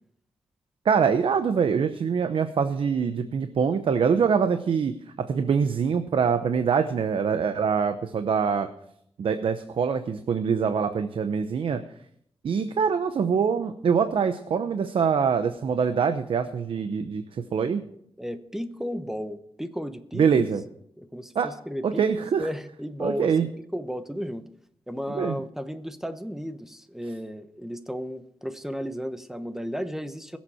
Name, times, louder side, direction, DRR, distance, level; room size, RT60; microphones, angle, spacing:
voice 1, 0.8-4.9 5.3-8.7 9.2-11.8 12.4-17.8 20.1-20.6 21.4-21.5 21.8-22.5 23.0-23.5 25.1-25.4, right 6 dB, 70° right, 9 dB, 0.8 m, -24 dB
voice 2, 18.2-20.5 21.0-22.0 22.4-24.4 24.9-30.4, equal, 5° right, 9 dB, 0.9 m, -34 dB
21.5 x 7.4 x 4.3 m, 0.70 s
wide cardioid pair, 110°, 9 cm